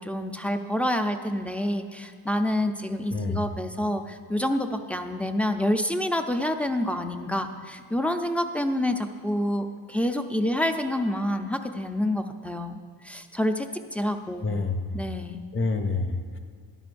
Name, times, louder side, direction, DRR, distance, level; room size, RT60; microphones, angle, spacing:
voice 1, 0.0-12.8 13.0-14.6 14.9-15.4, left 1 dB, 5° left, 5 dB, 0.5 m, -28 dB
voice 2, 3.1-3.5 14.4-15.0 15.5-16.4, left 3 dB, 30° left, 5 dB, 1.0 m, -28 dB
13.0 x 10.5 x 2.6 m, 2.1 s
cardioid pair, 90°, 41 cm